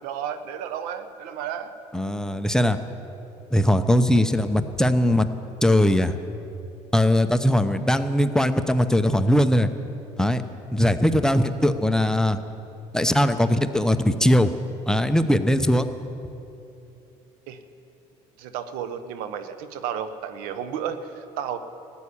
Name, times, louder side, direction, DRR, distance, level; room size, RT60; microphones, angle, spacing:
voice 1, 0.0-1.7 17.5-17.6 18.4-21.6, right 8 dB, 80° right, 10 dB, 1.0 m, -32 dB
voice 2, 1.9-2.8 3.5-5.3 5.6-6.1 6.9-9.7 10.2-10.4 10.7-12.4 12.9-14.5 14.9-15.9, left 1 dB, 5° left, 8 dB, 0.8 m, -20 dB
14.5 x 8.4 x 9.9 m, 2.8 s
supercardioid pair, 90°, 15 cm